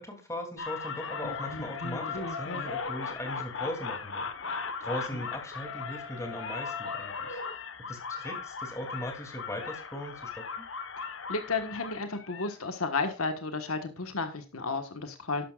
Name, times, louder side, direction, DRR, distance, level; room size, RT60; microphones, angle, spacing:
voice 1, 0.0-4.3 4.8-7.4 7.9-10.7, left 1 dB, 15° left, 3 dB, 2.8 m, -39 dB
sound 1, 0.6-12.6, left 5 dB, 60° left, 1.3 m, -37 dB
voice 2, 11.0-15.4, left 3 dB, 85° left, 7 dB, 1.4 m, -33 dB
12.0 x 11.0 x 2.4 m, 0.33 s
head